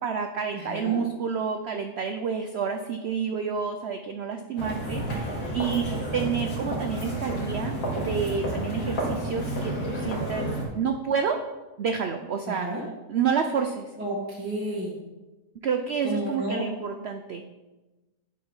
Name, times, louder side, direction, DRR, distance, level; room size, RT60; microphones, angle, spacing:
voice 1, 0.0-10.5 10.8-11.4 11.8-12.7 13.1-13.9 15.6-17.5, right 6 dB, 80° right, 6 dB, 0.5 m, -29 dB
voice 2, 0.5-1.0 12.4-12.8 14.0-15.0 16.0-16.7, right 1 dB, 5° right, -6 dB, 1.6 m, -31 dB
sound 1, 4.6-10.6, right 1 dB, 65° left, 2.5 m, -30 dB
9.9 x 4.8 x 5.4 m, 1.1 s
omnidirectional pair, 1.8 m